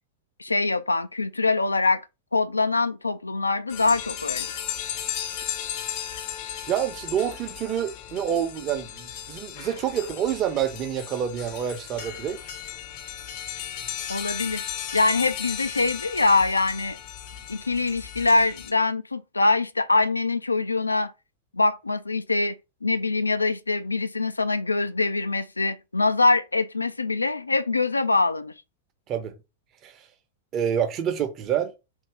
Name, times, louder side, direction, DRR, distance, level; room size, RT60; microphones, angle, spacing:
voice 1, 0.4-2.0 2.3-4.5 14.1-17.0 17.5-21.1 21.5-22.5 22.8-28.5, left 3 dB, 80° left, 0.3 m, -24 dB
sound 1, 3.7-18.7, left 10 dB, 45° left, 0.6 m, -35 dB
voice 2, 6.7-12.5 29.1-29.3 29.8-30.1 30.5-31.7, right 9 dB, 35° right, 0.8 m, -27 dB
3.6 x 2.8 x 4.7 m
figure-of-eight pair, 90°, 0 cm